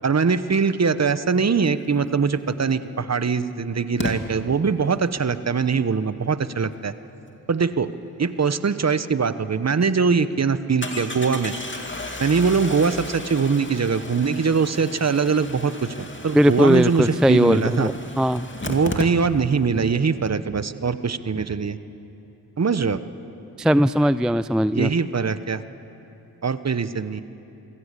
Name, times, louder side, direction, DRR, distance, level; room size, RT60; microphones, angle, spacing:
voice 1, 0.0-6.9 7.5-7.9 8.2-11.5 12.2-17.9 18.6-21.8 22.6-23.0 24.7-25.6 26.4-27.2, right 5 dB, 40° right, 13 dB, 1.0 m, -22 dB
Engine starting, 2.5-2.6 4.0-4.1 9.2-9.3 9.7-9.8 10.8-19.6 19.9-20.0 20.2-20.3, left 2 dB, 30° left, 2.4 m, -34 dB
voice 2, 16.3-18.5 23.6-24.9, equal, ahead, 15 dB, 0.4 m, -19 dB
24.0 x 15.5 x 8.3 m, 2.9 s
cardioid pair, 45°, 41 cm